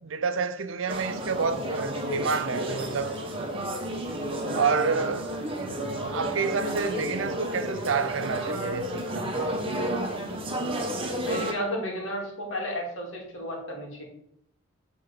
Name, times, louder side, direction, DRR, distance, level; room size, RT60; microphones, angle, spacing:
voice 1, 0.0-3.3 4.5-5.4 6.1-9.4, right 5 dB, 85° right, 0.6 m, -29 dB
sound 1, 0.9-11.5, right 1 dB, 30° right, 1.2 m, -31 dB
voice 2, 11.2-14.0, equal, 80° left, 2.3 m, -33 dB
7.9 x 4.0 x 5.1 m
head